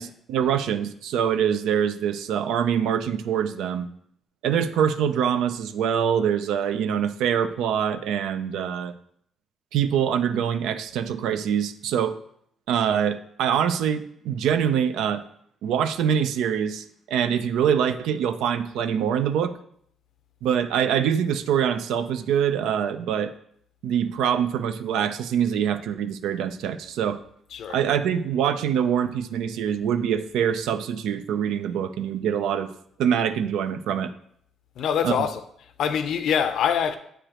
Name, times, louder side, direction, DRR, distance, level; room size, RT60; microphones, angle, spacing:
voice 1, 0.0-3.9 4.4-8.9 9.7-12.2 12.7-15.2 15.6-19.6 20.4-23.3 23.8-27.2 27.7-32.7 33.0-34.1 35.0-35.2, right 8 dB, 90° right, 0.4 m, -24 dB
voice 2, 34.8-35.4 35.8-37.0, left 8 dB, 75° left, 0.5 m, -24 dB
7.7 x 4.9 x 2.9 m
cardioid pair, 90°, 0 cm